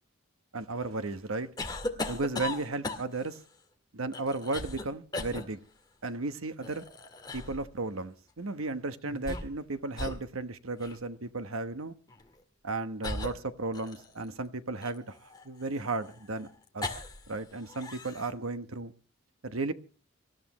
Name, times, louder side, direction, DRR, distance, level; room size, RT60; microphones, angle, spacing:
voice 1, 0.5-1.5 2.1-3.4 3.9-5.6 6.0-6.8 7.3-11.9 12.6-16.5 16.7-16.9 17.3-18.9 19.4-19.7, right 3 dB, 85° right, 1.1 m, -34 dB
sound 1, 1.6-3.3 4.1-4.9 5.1-5.4 6.6-7.6 9.0-9.7 9.9-10.2 10.8-11.0 12.1-12.3 13.0-14.3 14.8-17.3 17.6-18.3, left 2 dB, 20° left, 1.9 m, -37 dB
25.5 x 13.5 x 3.1 m
head